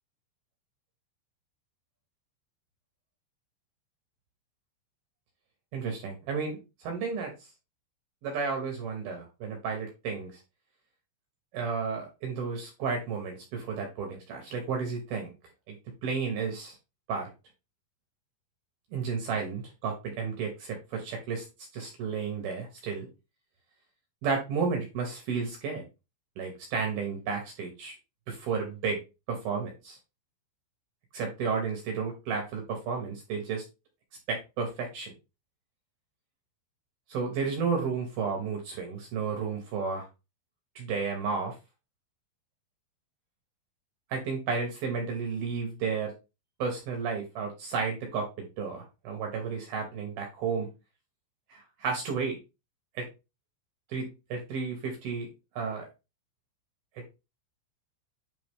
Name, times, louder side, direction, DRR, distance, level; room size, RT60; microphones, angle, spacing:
voice 1, 5.7-7.3 8.2-10.4 11.5-15.3 15.7-15.8 16.0-16.8 17.1-17.3 18.9-21.5 21.7-23.1 24.2-25.8 26.4-28.0 28.3-29.0 29.3-30.0 31.1-33.6 34.3-35.1 37.1-40.0 40.8-41.6 44.1-46.1 46.6-50.7 51.5-52.4 52.9-53.1 53.9-55.3 55.6-55.9 57.0-57.1, right 5 dB, 70° right, 2 dB, 2.4 m, -32 dB
9.4 x 3.5 x 3.6 m, 0.27 s
omnidirectional pair, 5.9 m